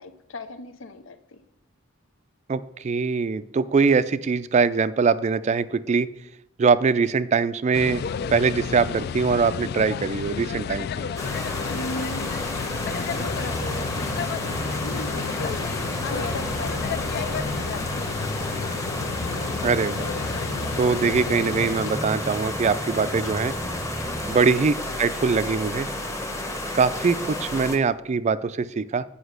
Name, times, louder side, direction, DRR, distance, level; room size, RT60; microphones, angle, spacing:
voice 1, 0.0-1.4 11.7-12.2 12.9-15.6 16.0-18.6 19.3-19.6, left 2 dB, 80° left, 10 dB, 0.7 m, -38 dB
voice 2, 2.5-6.1 6.6-8.0 8.3-11.1 19.6-20.0 20.8-23.5 24.3-25.9 26.8-29.0, right 5 dB, 35° right, 15 dB, 0.3 m, -22 dB
sound 1, 7.7-21.9, left 6 dB, 55° left, 0.3 m, -32 dB
sound 2, 11.2-27.8, left 1 dB, 15° left, 1.0 m, -32 dB
sound 3, 13.1-24.3, equal, 35° left, 1.5 m, -35 dB
7.9 x 5.1 x 6.5 m, 0.81 s
head